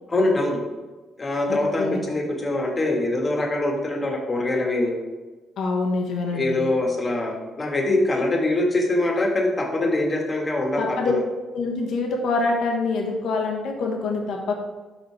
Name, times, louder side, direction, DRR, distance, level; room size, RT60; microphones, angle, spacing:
voice 1, 0.1-0.6 1.2-4.9 6.3-11.2, left 2 dB, 30° left, 0 dB, 1.7 m, -23 dB
voice 2, 1.5-2.0 5.6-6.7 10.8-11.1 11.5-14.5, left 3 dB, 75° left, 1 dB, 1.2 m, -25 dB
5.7 x 5.4 x 4.6 m, 1.2 s
cardioid pair, 90°, 0 cm